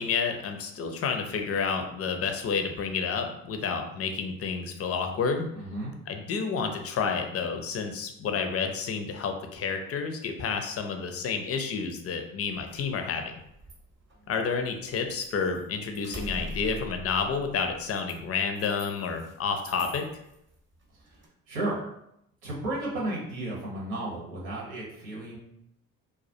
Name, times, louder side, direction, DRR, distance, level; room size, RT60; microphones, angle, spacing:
voice 1, 0.0-5.5 6.1-13.4 14.3-20.1, left 5 dB, 35° left, 5 dB, 0.5 m, -30 dB
voice 2, 5.5-5.9 15.4-15.5 21.5-21.8 22.4-25.4, right 2 dB, 85° right, -4 dB, 0.9 m, -33 dB
sound 1, 12.4-15.2 15.5-19.3 19.6-20.4 20.8-21.3, equal, 30° right, 0.8 m, -43 dB
2.2 x 2.1 x 2.7 m, 0.78 s
hypercardioid pair, 50°, 40 cm